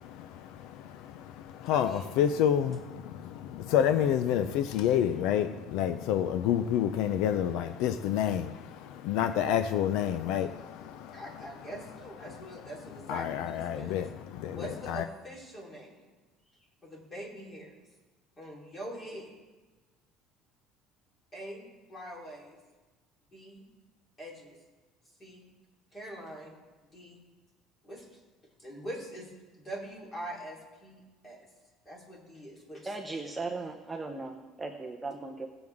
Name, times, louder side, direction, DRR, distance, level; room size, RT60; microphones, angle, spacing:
voice 1, 0.0-11.2 13.1-15.0, left 9 dB, 70° left, 11 dB, 0.5 m, -29 dB
voice 2, 1.7-2.2 11.1-14.0 14.5-16.0 16.8-17.7 18.4-19.3 21.3-22.6 23.3-23.6 24.2-24.6 25.2-25.5 25.9-26.6 26.9-27.2 27.8-28.2 28.6-29.3 29.6-31.4 31.9-32.9, right 1 dB, 20° left, -4 dB, 3.6 m, -43 dB
voice 3, 32.8-35.5, right 3 dB, 10° right, 1 dB, 0.8 m, -37 dB
17.5 x 7.9 x 3.6 m, 1.3 s
cardioid pair, 150°, 0 cm